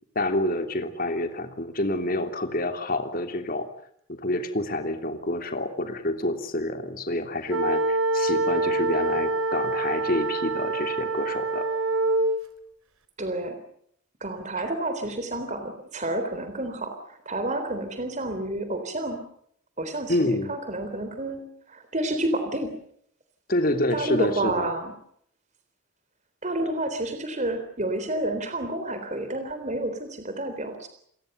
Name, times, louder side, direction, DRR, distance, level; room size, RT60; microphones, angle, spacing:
voice 1, 0.1-3.7 4.1-11.6 20.1-20.5 23.5-24.7, left 1 dB, 40° left, 6 dB, 3.2 m, -28 dB
sound 1, 7.5-12.4, right 2 dB, 90° right, 3.6 m, -25 dB
voice 2, 13.2-13.6 14.2-19.2 19.8-22.7 23.9-24.9 26.4-30.9, right 1 dB, 35° right, 7 dB, 3.7 m, -30 dB
29.5 x 21.0 x 6.8 m, 0.68 s
head